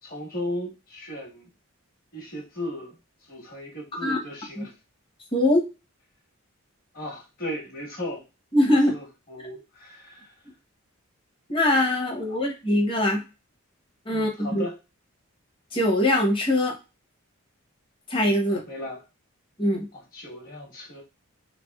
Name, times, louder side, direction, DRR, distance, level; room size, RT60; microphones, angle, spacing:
voice 1, 0.0-1.5 2.1-3.0 3.3-4.7 6.9-8.2 8.7-10.4 12.3-12.4 14.1-14.8 18.5-19.0 19.9-21.0, left 1 dB, 40° left, -2 dB, 1.3 m, -36 dB
voice 2, 5.3-5.6 8.5-8.9 11.5-13.2 14.1-14.6 15.7-16.8 18.1-18.6 19.6-19.9, left 1 dB, 25° left, 0 dB, 0.9 m, -22 dB
3.4 x 3.3 x 2.3 m, 0.28 s
head